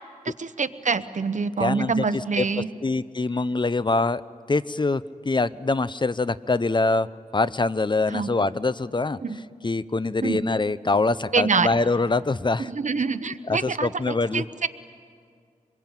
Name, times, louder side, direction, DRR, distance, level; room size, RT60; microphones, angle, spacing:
voice 1, 0.2-2.7 8.1-8.3 9.2-9.4 10.2-10.4 11.3-11.7 12.6-14.7, right 5 dB, 60° right, 11 dB, 1.0 m, -26 dB
voice 2, 1.6-2.5 2.8-4.2 4.5-7.1 7.3-9.2 9.6-12.7 13.5-14.4, left 3 dB, 35° left, 17 dB, 0.6 m, -24 dB
25.0 x 23.0 x 9.1 m, 2.1 s
cardioid pair, 60°, 14 cm